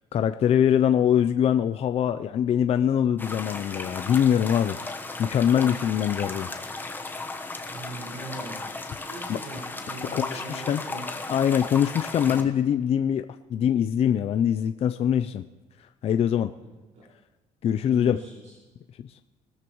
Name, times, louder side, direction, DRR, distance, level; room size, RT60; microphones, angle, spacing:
voice 1, 0.1-4.8 5.2-6.5 9.3-9.4 10.1-10.8 11.3-15.4 16.0-16.5 17.6-18.2, left 9 dB, 45° left, 9 dB, 0.5 m, -23 dB
sound 1, 3.2-12.4, left 3 dB, 15° left, 1.2 m, -35 dB
voice 2, 7.7-8.6 9.1-11.1 12.2-12.4 16.6-17.1 17.8-18.5, right 2 dB, 60° right, -4 dB, 5.4 m, -41 dB
24.0 x 13.5 x 3.1 m, 1.2 s
cardioid pair, 125°, 14 cm